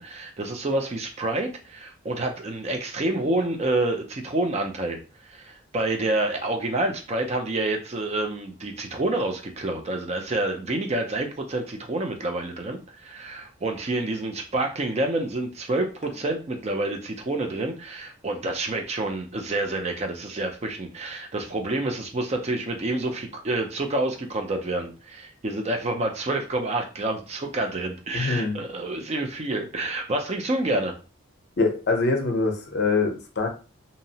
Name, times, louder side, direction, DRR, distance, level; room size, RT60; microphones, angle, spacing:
voice 1, 0.0-30.9, right 2 dB, 30° right, 4 dB, 0.4 m, -28 dB
voice 2, 28.1-28.6 31.6-33.5, left 3 dB, 50° left, 3 dB, 0.6 m, -24 dB
2.7 x 2.0 x 2.7 m, 0.33 s
head